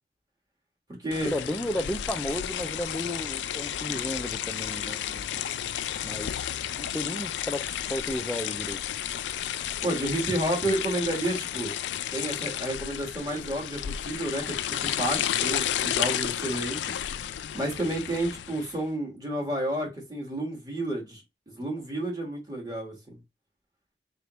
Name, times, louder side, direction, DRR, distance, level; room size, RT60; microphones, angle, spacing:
sound 1, 1.1-18.8, left 10 dB, 90° left, 0.3 m, -32 dB
voice 1, 1.2-5.4 6.0-7.6 7.9-8.8, equal, 5° left, 0.3 m, -33 dB
voice 2, 9.8-11.7 12.1-16.8 17.5-23.2, right 1 dB, 20° right, 1.5 m, -31 dB
3.9 x 3.4 x 3.0 m
head